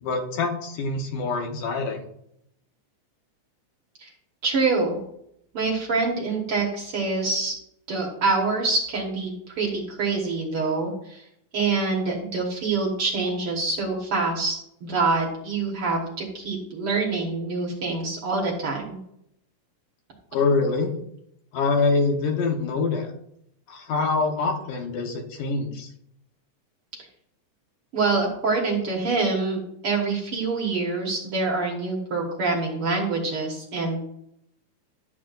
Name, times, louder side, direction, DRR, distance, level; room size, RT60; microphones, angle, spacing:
voice 1, 0.0-2.0 20.3-20.9 21.5-23.1 23.7-25.9, left 4 dB, 80° left, 2 dB, 2.8 m, -25 dB
voice 2, 4.4-5.0 5.5-7.5 7.9-11.2 11.5-19.0 27.9-34.0, right 3 dB, 50° right, -2 dB, 2.0 m, -26 dB
12.5 x 8.5 x 2.5 m, 0.75 s
omnidirectional pair, 3.8 m